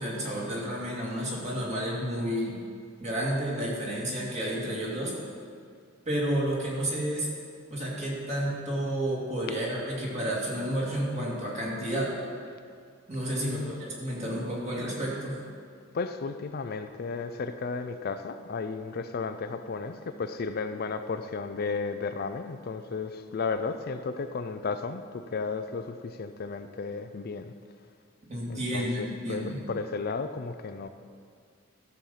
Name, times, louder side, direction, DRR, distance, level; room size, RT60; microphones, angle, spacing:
voice 1, 0.0-2.6 3.0-5.1 6.1-7.3 7.7-12.1 13.1-15.4 28.3-29.6, right 1 dB, 35° right, -4 dB, 2.5 m, -31 dB
voice 2, 13.4-13.8 15.9-27.5 28.5-30.9, left 4 dB, 50° left, 9 dB, 0.4 m, -34 dB
13.5 x 7.1 x 5.6 m, 2.1 s
head